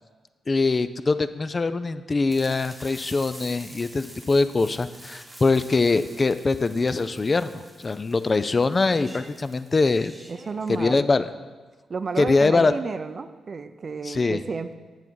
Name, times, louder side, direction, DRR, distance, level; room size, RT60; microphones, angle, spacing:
voice 1, 0.5-10.1 10.7-11.3 12.2-12.7 14.1-14.4, left 3 dB, 35° left, 12 dB, 0.3 m, -23 dB
sound 1, 2.3-10.8, right 1 dB, 10° right, 1.1 m, -46 dB
voice 2, 10.3-11.1 11.9-14.7, right 4 dB, 45° right, 11 dB, 0.4 m, -32 dB
7.7 x 7.0 x 4.6 m, 1.3 s
cardioid pair, 75°, 0 cm